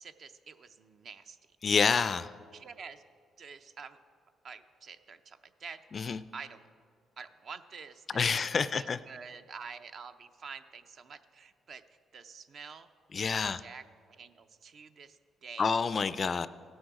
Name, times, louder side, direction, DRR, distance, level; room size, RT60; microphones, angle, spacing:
voice 1, 0.0-1.4 2.5-3.0 3.4-4.0 4.4-6.6 7.2-11.8 12.1-12.9 13.3-15.8, right 5 dB, 55° right, 10 dB, 0.5 m, -48 dB
voice 2, 1.6-2.3 5.9-6.2 8.1-9.0 13.1-13.6 15.6-16.5, left 5 dB, 40° left, 15 dB, 0.3 m, -28 dB
16.5 x 6.4 x 4.7 m, 2.2 s
cardioid pair, 90°, 0 cm